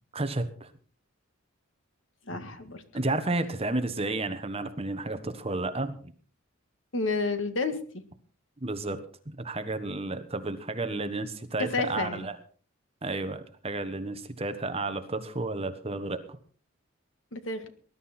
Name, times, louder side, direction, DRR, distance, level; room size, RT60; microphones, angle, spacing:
voice 1, 0.1-0.7 2.9-6.1 8.6-9.0 9.3-12.4 13.0-16.2, right 2 dB, 30° right, 9 dB, 1.3 m, -32 dB
voice 2, 2.3-2.8 6.9-7.8 11.6-12.3 17.3-17.7, left 3 dB, 65° left, 9 dB, 1.9 m, -30 dB
20.0 x 11.5 x 4.4 m, 0.43 s
head